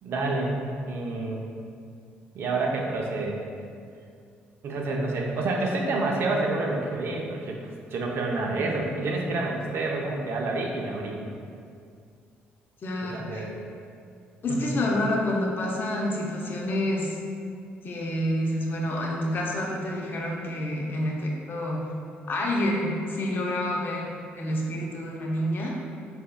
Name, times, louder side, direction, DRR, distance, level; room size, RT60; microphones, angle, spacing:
voice 1, 0.0-0.5 0.9-1.4 2.3-3.4 4.6-11.2 13.1-13.5 14.5-14.8, right 2 dB, 65° right, 0 dB, 0.6 m, -28 dB
voice 2, 12.8-13.5 14.4-17.2 17.8-21.9 22.3-25.7, left 1 dB, 50° left, -1 dB, 0.7 m, -28 dB
4.1 x 3.5 x 2.2 m, 2.3 s
supercardioid pair, 70°, 4 cm